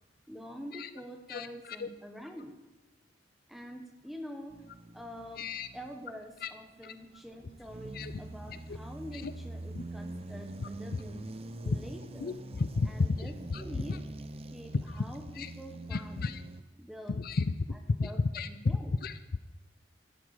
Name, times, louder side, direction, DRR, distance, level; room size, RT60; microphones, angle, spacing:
voice 1, 0.3-2.5 3.5-4.5 4.9-5.4 5.7-11.3 11.6-12.4 12.8-14.0 14.5-16.4 16.8-17.2 17.7-18.9, equal, ahead, 4 dB, 1.2 m, -46 dB
voice 2, 1.3-1.9 5.4-5.7 6.4-6.5 6.8-6.9 7.9-8.1 8.5-8.8 9.1-9.3 9.7-9.8 10.6-10.7 11.7-11.8 12.2-12.9 13.2-14.0 14.9-15.0 15.4-15.5 15.9-16.4 17.1-17.5 18.0-19.2, left 4 dB, 55° left, 12 dB, 0.5 m, -33 dB
sound 1, 4.5-6.2 6.8-16.6, right 2 dB, 35° right, 0.6 m, -44 dB
12.0 x 11.0 x 4.9 m, 1.2 s
head